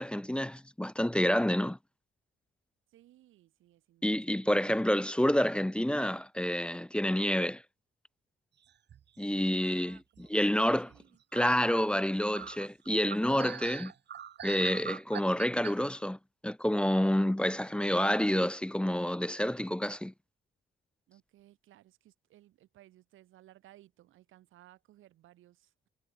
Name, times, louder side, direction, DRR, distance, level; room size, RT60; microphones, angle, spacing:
voice 1, 0.0-1.8 4.0-7.6 9.2-10.0 10.3-10.9 11.3-13.9 14.4-16.2 16.4-20.1, equal, 5° left, 0.7 m, -28 dB
voice 2, 2.9-4.7 9.5-11.2 21.1-25.9, right 14 dB, 85° right, 7.4 m, -60 dB
sound 1, 8.7-9.4 9.9-10.5 10.9-11.0 11.3-15.7, right 9 dB, 60° right, 3.7 m, -43 dB
cardioid pair, 90°, 20 cm